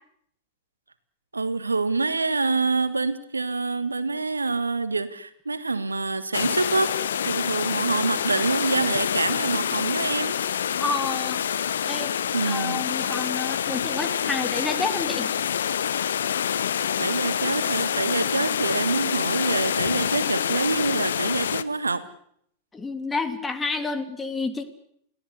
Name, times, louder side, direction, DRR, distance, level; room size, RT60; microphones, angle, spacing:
voice 1, 1.3-10.4 12.3-12.9 17.0-22.0, right 3 dB, 80° right, 13 dB, 1.8 m, -26 dB
sound 1, 6.3-21.6, left 8 dB, 65° left, 1.0 m, -26 dB
voice 2, 10.8-12.1 12.4-15.3 22.7-24.6, left 3 dB, 15° left, 8 dB, 3.0 m, -30 dB
29.0 x 17.5 x 8.3 m, 0.69 s
figure-of-eight pair, 90°, 0 cm